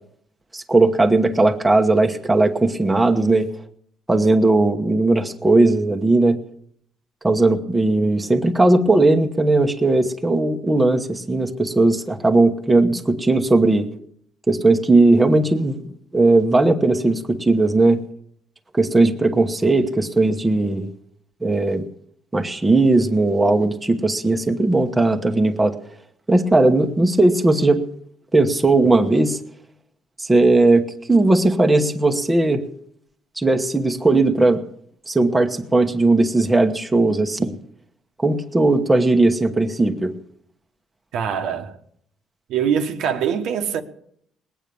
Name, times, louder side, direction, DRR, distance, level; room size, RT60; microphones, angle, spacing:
voice 1, 0.5-3.5 4.1-6.4 7.2-13.9 14.5-15.8 16.1-18.0 18.7-20.9 21.4-21.8 22.3-25.7 26.3-27.8 28.3-29.4 30.2-32.6 33.4-34.6 35.1-37.6 38.2-40.1, right 2 dB, 10° right, 1.1 m, -17 dB
voice 2, 41.1-41.8 42.5-43.8, right 8 dB, 70° right, 1.3 m, -23 dB
20.0 x 9.1 x 6.9 m
cardioid pair, 135°, 0 cm